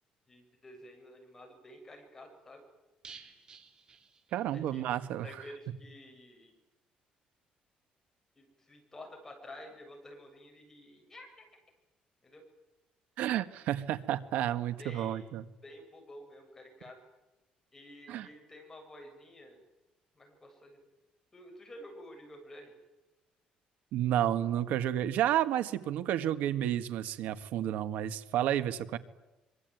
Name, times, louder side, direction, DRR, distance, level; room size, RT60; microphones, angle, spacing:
voice 1, 0.3-2.6 4.5-5.0 5.2-6.6 8.4-11.5 12.2-12.4 14.8-15.3 15.6-17.0 17.7-19.6 20.1-20.8 21.3-22.7, left 1 dB, 15° left, 2 dB, 7.9 m, -51 dB
sound 1, 3.0-4.8 5.1-5.2 5.5-5.6, right 5 dB, 30° right, 3.0 m, -53 dB
voice 2, 4.3-5.3 13.2-15.4 18.1-18.3 23.9-29.0, right 11 dB, 75° right, 11 dB, 1.7 m, -31 dB
25.0 x 24.0 x 9.4 m, 1.0 s
cardioid pair, 155°, 3 cm